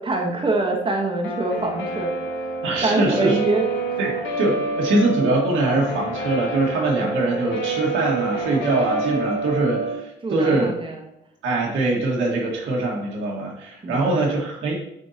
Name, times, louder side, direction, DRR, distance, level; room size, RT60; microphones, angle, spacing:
voice 1, 0.0-2.2 2.8-4.0 10.2-11.1 13.8-14.4, right 2 dB, 25° right, 0 dB, 1.2 m, -24 dB
Guitar, 1.2-9.9, right 2 dB, 75° left, 1.4 m, -28 dB
voice 2, 2.6-3.4 4.0-10.7 11.4-14.7, right 2 dB, 90° right, -2 dB, 1.8 m, -23 dB
8.2 x 4.3 x 2.9 m, 0.82 s
cardioid pair, 90°, 20 cm